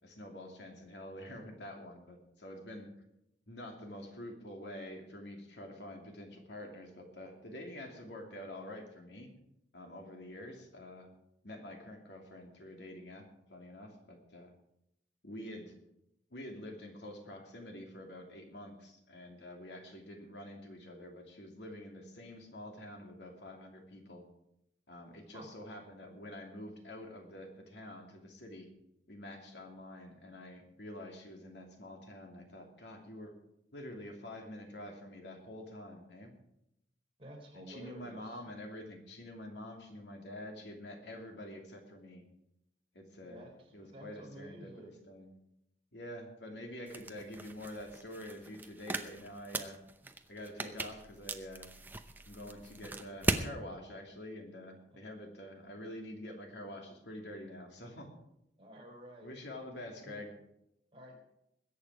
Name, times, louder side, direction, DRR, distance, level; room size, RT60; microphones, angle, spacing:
voice 1, 0.0-2.9 3.5-9.3 9.7-11.1 11.4-14.5 15.2-15.7 16.3-24.3 24.9-28.7 29.1-33.3 33.7-36.3 37.5-42.3 42.9-43.5 43.7-45.3 45.9-49.8 50.3-51.7 52.3-58.1 59.2-60.3, left 1 dB, 80° left, 2 dB, 2.7 m, -47 dB
voice 2, 37.2-38.4 43.2-45.0 54.9-55.0 58.6-59.3 59.7-60.2 60.9-61.2, equal, 30° right, -1 dB, 3.7 m, -51 dB
sound 1, 46.9-53.5, right 2 dB, 10° right, 0.7 m, -39 dB
21.0 x 8.7 x 4.9 m, 0.82 s
head